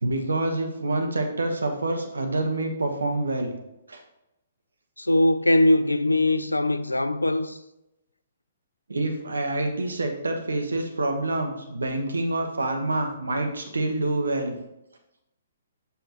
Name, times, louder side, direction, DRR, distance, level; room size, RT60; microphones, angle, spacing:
voice 1, 0.0-3.5 3.9-4.0 8.9-14.6, right 2 dB, 75° right, 1.0 m, -27 dB
voice 2, 5.0-7.6, left 1 dB, 85° left, 0.4 m, -21 dB
6.8 x 5.8 x 3.0 m
figure-of-eight pair, 125°, 0 cm